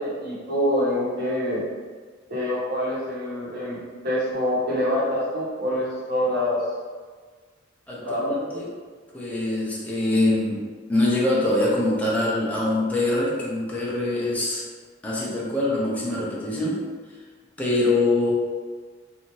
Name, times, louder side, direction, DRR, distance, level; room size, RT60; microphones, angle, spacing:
voice 1, 0.0-1.6 2.3-6.6 8.0-8.4, left 1 dB, 55° right, -7 dB, 1.2 m, -26 dB
voice 2, 7.9-8.7 9.1-14.7 15.0-16.8 17.6-18.3, left 2 dB, 10° left, -6 dB, 0.6 m, -24 dB
3.3 x 2.7 x 3.0 m, 1.5 s
head